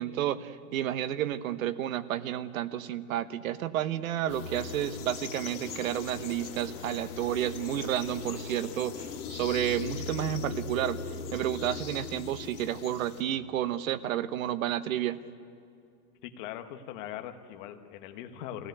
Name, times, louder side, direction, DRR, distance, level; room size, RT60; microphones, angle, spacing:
voice 1, 0.0-11.0 11.3-15.2, right 11 dB, 60° right, 14 dB, 1.1 m, -31 dB
sound 1, 4.3-13.2, left 6 dB, 75° left, 2.7 m, -39 dB
sound 2, 5.6-9.2, right 1 dB, 5° right, 1.1 m, -55 dB
voice 2, 16.2-18.7, left 11 dB, 35° left, 6 dB, 1.3 m, -41 dB
24.0 x 16.5 x 9.3 m, 2.5 s
supercardioid pair, 170°, 45 cm